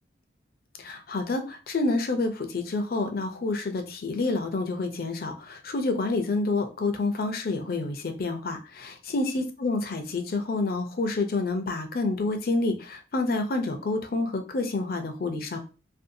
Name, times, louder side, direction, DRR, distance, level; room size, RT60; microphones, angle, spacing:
voice 1, 0.8-15.6, left 3 dB, 55° left, 6 dB, 0.5 m, -28 dB
2.6 x 2.2 x 2.6 m, 0.34 s
head